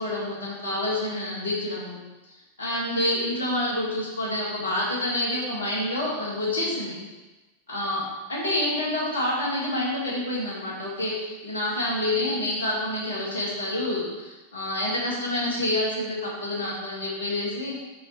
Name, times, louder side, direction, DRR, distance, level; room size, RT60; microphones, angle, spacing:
voice 1, 0.0-2.0 2.3-7.0 7.7-17.8, left 1 dB, 70° left, -5 dB, 2.4 m, -28 dB
6.7 x 5.7 x 3.5 m, 1.1 s
figure-of-eight pair, 90°, 0 cm